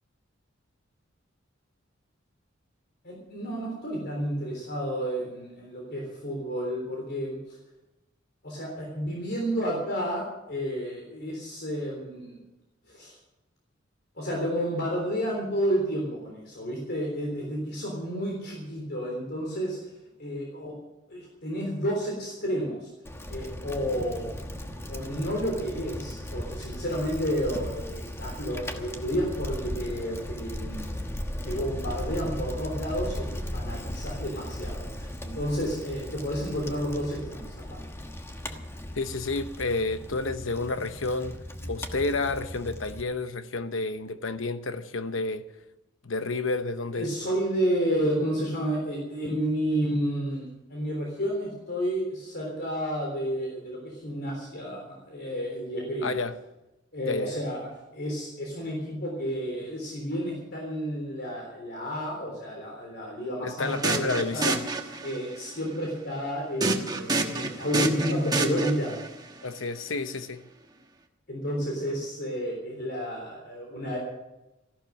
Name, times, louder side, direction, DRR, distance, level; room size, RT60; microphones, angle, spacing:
voice 1, 3.0-7.6 8.4-12.4 12.9-13.2 14.2-19.9 20.2-20.8 21.1-22.9 23.3-24.4 24.9-31.1 31.4-37.8 46.9-56.1 56.9-64.5 65.0-69.0 71.3-74.0, equal, 55° left, 3.5 m, -31 dB
Bicycle, 23.0-43.0, left 1 dB, 15° left, 1.2 m, -37 dB
voice 2, 38.9-41.4 41.6-45.4 46.0-47.1 56.0-56.3 57.1-57.4 63.4-64.6 69.4-70.4, left 3 dB, 75° left, 1.0 m, -30 dB
sound 1, 63.6-65.4 66.6-69.1, right 3 dB, 20° right, 1.3 m, -29 dB
14.5 x 12.0 x 6.4 m
head